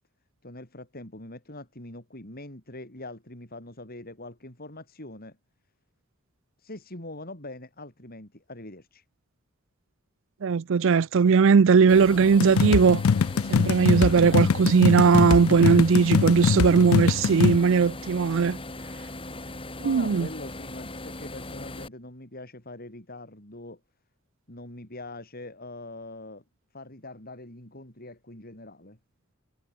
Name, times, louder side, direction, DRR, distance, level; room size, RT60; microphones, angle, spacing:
voice 1, 0.4-5.4 6.6-9.0 19.8-23.8 24.5-26.4 26.7-29.0, left 2 dB, 45° left, 6.7 m, -43 dB
voice 2, 10.4-13.0 13.5-18.6 19.8-20.3, right 5 dB, 65° right, 0.4 m, -19 dB
sound 1, 11.9-21.9, left 2 dB, 25° left, 5.6 m, -39 dB
sound 2, 12.4-17.6, left 6 dB, 80° left, 0.4 m, -23 dB
head